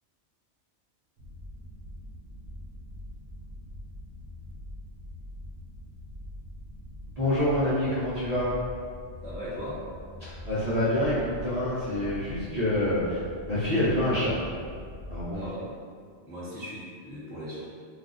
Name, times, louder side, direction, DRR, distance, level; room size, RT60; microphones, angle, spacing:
sound 1, 1.2-15.5, left 1 dB, 60° right, 1.0 m, -43 dB
voice 1, 7.2-8.5 10.2-13.2 13.5-14.4 15.1-15.4, left 1 dB, 45° right, -11 dB, 0.6 m, -26 dB
voice 2, 9.2-9.8 15.3-15.7 16.3-17.6, equal, 15° left, -11 dB, 0.6 m, -38 dB
2.4 x 2.4 x 3.8 m, 2.1 s
omnidirectional pair, 1.2 m